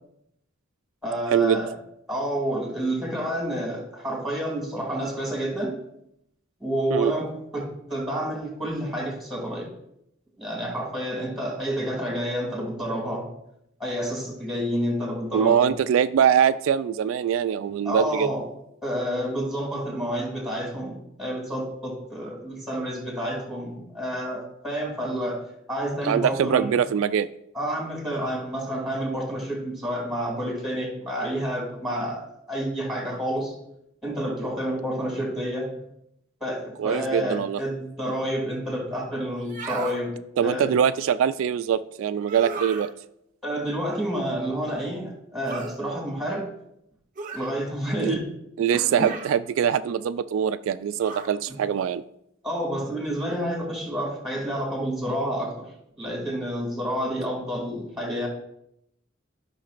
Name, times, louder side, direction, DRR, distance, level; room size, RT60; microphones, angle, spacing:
voice 1, 1.0-1.7 2.1-5.8 6.6-9.7 10.4-13.3 13.8-15.7 17.8-18.5 18.8-25.4 25.7-26.7 27.5-33.5 34.0-35.7 36.4-40.2 40.4-40.7 43.4-46.5 47.3-48.2 48.7-49.1 52.4-55.7 56.0-58.3, equal, ahead, -1 dB, 2.3 m, -29 dB
voice 2, 15.3-18.3 26.0-27.3 36.8-37.6 40.4-42.9 48.0-48.2 48.6-52.0, right 8 dB, 75° right, 12 dB, 0.3 m, -23 dB
sound 1, 39.4-40.0 42.2-42.9 45.5-45.8 47.2-47.5 48.9-49.4 51.0-51.4, right 4 dB, 40° right, 0.8 m, -35 dB
13.0 x 5.8 x 2.5 m, 0.78 s
head